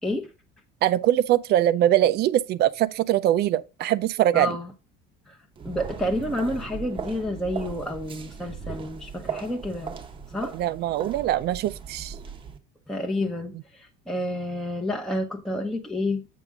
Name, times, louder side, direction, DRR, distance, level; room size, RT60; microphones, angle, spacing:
voice 1, 0.8-4.6 10.5-12.1, right 12 dB, 50° right, 0.5 m, -22 dB
voice 2, 4.3-4.7 5.3-5.4 5.6-9.9 10.3-10.5 12.9-16.3, left 1 dB, 5° left, 0.9 m, -29 dB
sound 1, 5.6-12.6, right 6 dB, 25° right, 0.9 m, -38 dB
8.4 x 5.1 x 3.5 m
cardioid pair, 140°, 21 cm